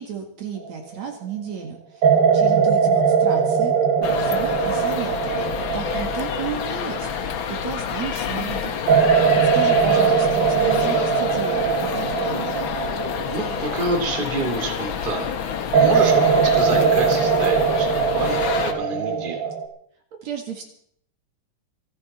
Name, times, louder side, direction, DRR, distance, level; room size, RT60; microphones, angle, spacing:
voice 1, 0.0-2.1 2.3-5.4 5.7-8.8 9.2-12.6 20.2-20.6, right 7 dB, 55° right, 3 dB, 3.0 m, -33 dB
sound 1, 0.7-1.1 2.0-7.9 8.9-14.9 15.7-19.7, right 6 dB, 85° right, 3.4 m, -20 dB
sound 2, 4.0-18.7, left 7 dB, 80° left, 1.1 m, -28 dB
voice 2, 9.6-10.1 13.3-15.3 15.8-19.4, right 2 dB, 15° right, 2 dB, 2.3 m, -28 dB
28.0 x 9.4 x 4.2 m, 0.64 s
omnidirectional pair, 4.0 m